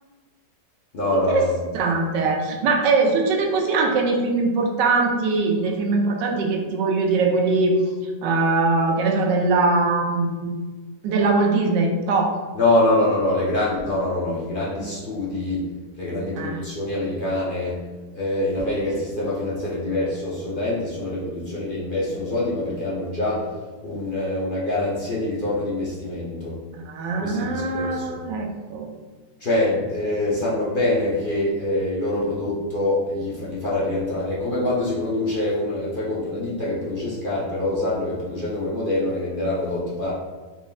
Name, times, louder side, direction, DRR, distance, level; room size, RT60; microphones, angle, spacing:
voice 1, 0.9-1.7 12.5-15.7 15.9-17.8 18.1-23.5 23.8-26.5 27.2-28.2 29.4-40.1, left 1 dB, 45° left, -7 dB, 0.6 m, -25 dB
voice 2, 1.7-7.8 8.2-10.6 11.0-12.3 16.4-16.6 26.7-28.9, right 3 dB, 80° right, 2 dB, 1.3 m, -21 dB
4.1 x 3.5 x 2.3 m, 1.3 s
omnidirectional pair, 1.9 m